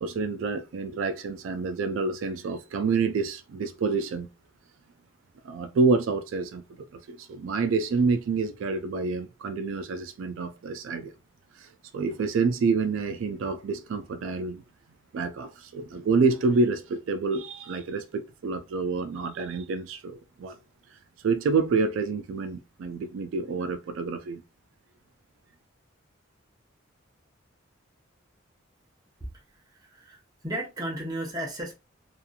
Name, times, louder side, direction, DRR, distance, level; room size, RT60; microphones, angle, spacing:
voice 1, 0.0-4.3 5.4-11.1 11.6-11.7 11.9-14.6 15.1-20.6 21.2-24.4, right 4 dB, 80° right, 0.3 m, -28 dB
voice 2, 29.7-31.7, right 1 dB, 20° right, 0.7 m, -34 dB
2.9 x 2.4 x 2.3 m
head